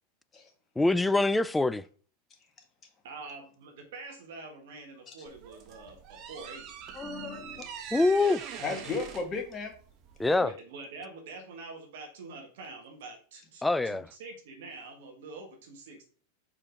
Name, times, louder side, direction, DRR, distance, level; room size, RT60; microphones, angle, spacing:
voice 1, 0.8-1.8 7.9-8.4 10.2-10.5 13.6-14.0, left 2 dB, 10° left, 0.3 m, -24 dB
voice 2, 3.0-6.7 10.4-16.1, right 3 dB, 70° right, 1.6 m, -45 dB
sound 1, 5.2-10.4, right 8 dB, 45° right, 1.1 m, -43 dB
voice 3, 6.9-7.7 8.6-9.7, left 4 dB, 25° left, 1.7 m, -35 dB
4.9 x 4.4 x 5.1 m
hypercardioid pair, 105°, 0 cm